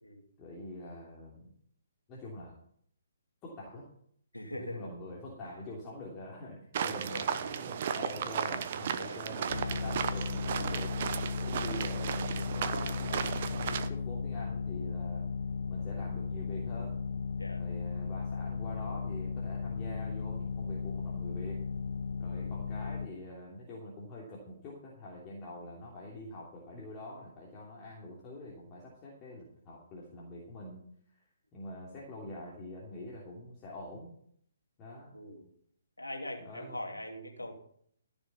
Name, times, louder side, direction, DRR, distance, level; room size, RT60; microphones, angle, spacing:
voice 1, 0.4-1.5 2.1-2.5 3.4-3.9 4.6-10.9 11.4-15.2 15.7-17.0 17.6-21.6 22.2-30.8 31.1-31.2 31.5-34.1 34.8-35.2 36.4-36.8, left 1 dB, 25° left, -4 dB, 3.0 m, -45 dB
voice 2, 4.3-4.9 7.1-7.4 9.0-9.2 11.4-11.6 17.4-17.6 22.3-22.6 35.1-35.5 36.0-37.5, left 1 dB, 90° left, 2 dB, 2.9 m, -42 dB
sound 1, 6.7-13.9, right 8 dB, 45° right, 0.9 m, -35 dB
sound 2, 9.5-23.1, left 5 dB, 65° left, 0.6 m, -36 dB
14.0 x 7.1 x 5.7 m, 0.66 s
figure-of-eight pair, 135°, 0 cm